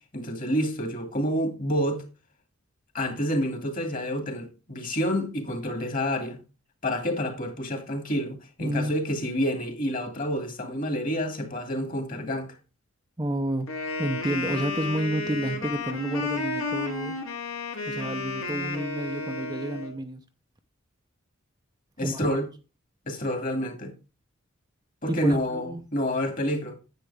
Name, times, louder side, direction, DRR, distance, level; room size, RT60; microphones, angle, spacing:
voice 1, 0.1-2.0 2.9-6.4 6.8-12.5 22.0-22.5 23.1-23.9 25.0-26.7, equal, 40° left, 2.4 m, -28 dB
voice 2, 8.6-9.0 13.2-17.2 17.9-20.2 22.0-22.3 25.1-25.9, right 1 dB, 20° right, 0.6 m, -30 dB
Wind instrument woodwind instrument, 13.7-19.9, left 3 dB, 75° left, 2.7 m, -32 dB
9.8 x 8.1 x 3.4 m
head